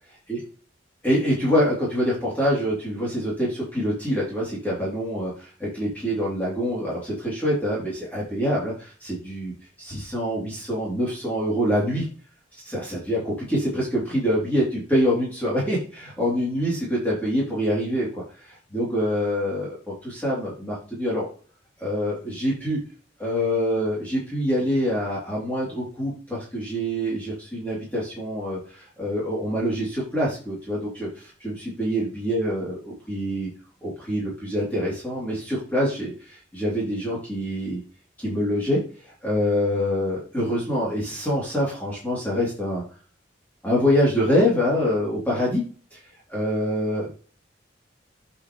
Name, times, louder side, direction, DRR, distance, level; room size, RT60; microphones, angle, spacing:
voice 1, 1.0-9.5 9.8-12.0 12.6-21.3 21.8-22.8 23.2-32.8 33.1-33.5 33.8-37.8 38.2-42.8 43.6-45.6 45.9-46.0 46.3-47.1, equal, 10° left, -7 dB, 3.2 m, -25 dB
8.4 x 6.1 x 3.2 m, 0.39 s
head